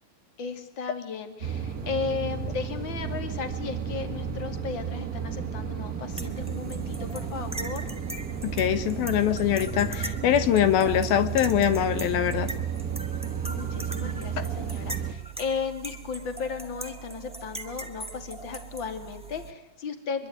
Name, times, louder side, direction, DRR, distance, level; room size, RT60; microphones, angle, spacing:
voice 1, 0.4-7.9 13.4-20.3, left 5 dB, 35° left, 7 dB, 3.2 m, -35 dB
sound 1, 1.4-15.1, right 7 dB, 30° right, 1.9 m, -33 dB
sound 2, 6.1-19.5, right 3 dB, 5° right, 1.2 m, -40 dB
voice 2, 8.6-12.5, left 10 dB, 80° left, 11 dB, 3.1 m, -23 dB
24.5 x 23.5 x 9.6 m, 0.75 s
omnidirectional pair, 4.2 m